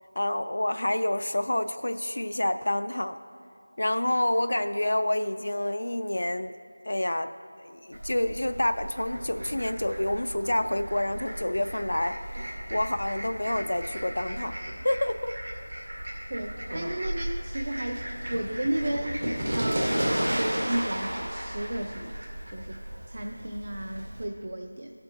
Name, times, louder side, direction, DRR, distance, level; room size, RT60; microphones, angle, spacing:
voice 1, 0.2-3.2 3.8-6.5 6.9-7.3 7.6-14.6 14.8-15.4, left 1 dB, 70° left, 10 dB, 0.3 m, -28 dB
Fowl, 7.9-24.2, equal, 80° right, 2.1 m, -34 dB
voice 2, 16.3-22.8 23.1-24.9, right 1 dB, 45° right, 3 dB, 0.5 m, -33 dB
15.5 x 7.5 x 2.9 m, 2.7 s
figure-of-eight pair, 175°, 0 cm